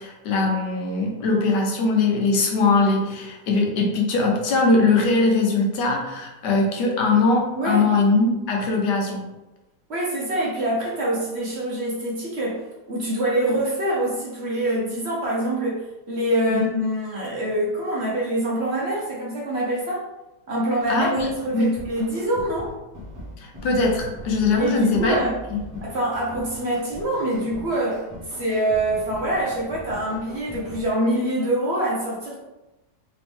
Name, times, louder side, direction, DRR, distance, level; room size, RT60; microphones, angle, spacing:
voice 1, 0.0-9.3 16.5-16.6 20.9-21.7 23.4-25.2 25.5-25.6, left 3 dB, 90° left, 1 dB, 1.4 m, -21 dB
voice 2, 7.5-7.9 9.9-20.0 20.5-21.1 21.4-22.7 24.6-25.4 25.8-32.4, right 1 dB, 50° right, -4 dB, 0.9 m, -25 dB
sound 1, 20.8-30.9, left 1 dB, 15° right, 0.9 m, -40 dB
3.5 x 3.1 x 3.4 m, 1.0 s
omnidirectional pair, 1.8 m